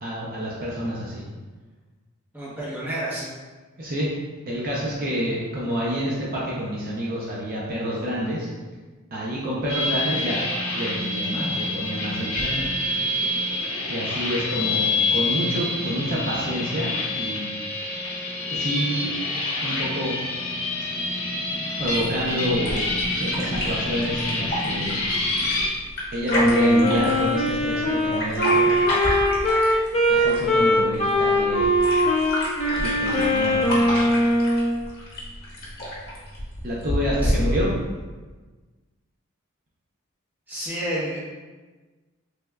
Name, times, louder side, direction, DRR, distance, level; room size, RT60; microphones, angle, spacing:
voice 1, 0.0-1.2 3.8-4.1 4.5-8.5 9.1-10.4 10.7-12.6 13.9-17.6 18.5-19.1 19.6-20.1 21.8-22.9 23.2-25.0 26.1-28.7 30.1-31.7 32.7-34.1 36.6-37.7, equal, 40° right, -6 dB, 0.5 m, -28 dB
voice 2, 2.3-3.3 37.2-37.3 40.5-41.2, right 1 dB, 10° right, -9 dB, 0.8 m, -30 dB
sound 1, 9.7-25.7, left 2 dB, 75° left, 0.7 m, -27 dB
sound 2, 21.8-37.8, left 1 dB, 45° left, 0.9 m, -30 dB
Wind instrument woodwind instrument, 26.3-34.8, equal, 30° left, 0.5 m, -21 dB
3.4 x 3.1 x 2.2 m, 1.3 s
head